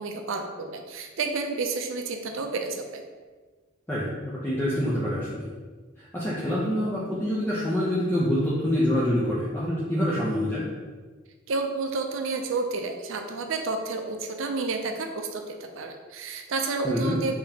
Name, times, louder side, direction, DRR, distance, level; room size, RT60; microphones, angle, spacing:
voice 1, 0.0-3.0 11.5-17.4, right 3 dB, 75° right, 4 dB, 0.4 m, -30 dB
voice 2, 3.9-5.5 6.0-10.6 16.8-17.2, equal, 10° left, -9 dB, 0.5 m, -26 dB
3.5 x 3.5 x 2.8 m, 1.4 s
head